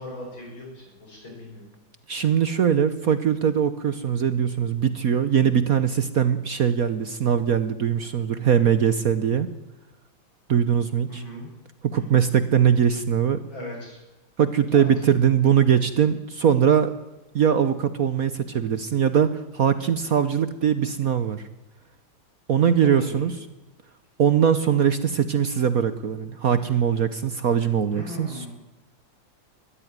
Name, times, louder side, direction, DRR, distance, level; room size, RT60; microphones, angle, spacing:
voice 1, 0.0-1.7 11.1-11.5 11.9-12.2 13.5-14.0 14.7-14.9 20.5-20.6 22.6-23.3 27.9-28.5, left 1 dB, 70° left, -1 dB, 8.8 m, -39 dB
voice 2, 2.1-9.5 10.5-11.2 11.8-13.4 14.4-16.9 17.3-21.4 22.5-23.3 24.2-28.5, right 8 dB, 55° right, 12 dB, 1.2 m, -21 dB
20.5 x 14.0 x 9.5 m, 1.0 s
omnidirectional pair, 2.2 m